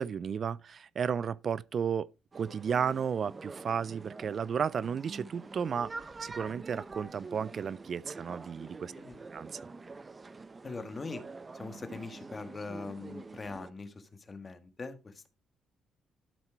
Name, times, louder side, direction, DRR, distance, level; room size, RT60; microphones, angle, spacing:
voice 1, 0.0-2.1 2.3-5.9 6.2-8.9 9.3-9.6, right 7 dB, 50° right, 0.3 m, -33 dB
sound 1, 2.3-13.7, right 3 dB, 30° right, 0.7 m, -46 dB
voice 2, 10.6-11.2 11.5-15.3, left 3 dB, 30° left, 1.5 m, -42 dB
12.0 x 4.4 x 4.5 m
cardioid pair, 90°, 0 cm